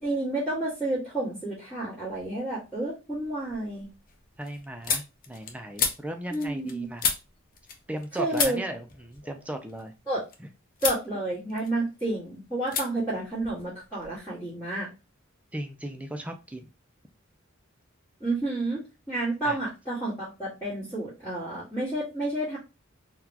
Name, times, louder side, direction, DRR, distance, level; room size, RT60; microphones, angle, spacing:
voice 1, 0.0-3.9 6.3-6.9 8.2-8.6 10.1-10.2 10.8-14.9 18.2-18.8 19.1-22.6, right 2 dB, 15° left, -13 dB, 1.6 m, -30 dB
sound 1, 2.1-2.6 3.0-8.1 8.3-10.4 10.8-11.1 11.4-12.2 12.7-12.9 13.1-14.2, left 6 dB, 45° left, 0.5 m, -33 dB
voice 2, 4.4-7.0 7.9-9.9 10.4-10.5 15.5-16.7 19.4-19.6, right 1 dB, 5° right, 6 dB, 0.3 m, -37 dB
3.9 x 2.2 x 2.8 m, 0.29 s
head